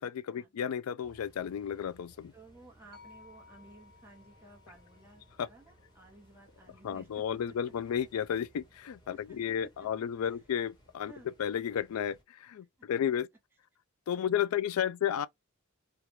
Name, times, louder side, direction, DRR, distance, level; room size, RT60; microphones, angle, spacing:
voice 1, 0.0-2.3 5.4-5.5 6.8-11.1 11.4-13.3 14.1-15.3, left 9 dB, 80° left, 0.4 m, -33 dB
sound 1, 1.0-12.2, right 1 dB, 20° left, 1.2 m, -62 dB
voice 2, 2.3-7.4 9.1-10.4 11.1-11.3 12.8-12.9 14.1-14.7, right 2 dB, 10° right, 1.1 m, -56 dB
sound 2, 2.9-7.1, left 4 dB, 45° left, 0.6 m, -60 dB
3.2 x 2.4 x 2.7 m
head